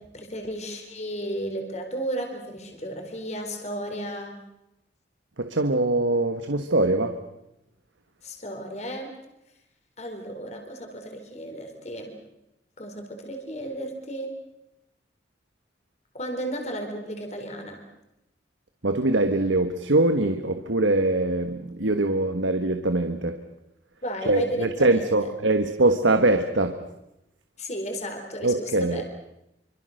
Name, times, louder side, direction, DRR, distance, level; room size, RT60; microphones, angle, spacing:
voice 1, 0.0-4.3 8.2-9.1 10.0-12.2 12.8-14.3 16.1-17.8 24.0-25.3 27.6-29.0, equal, 35° left, 4 dB, 4.2 m, -34 dB
voice 2, 5.4-7.2 18.8-23.4 24.3-26.8 28.4-29.0, right 2 dB, 90° right, 7 dB, 1.5 m, -23 dB
27.0 x 25.5 x 6.6 m, 0.87 s
head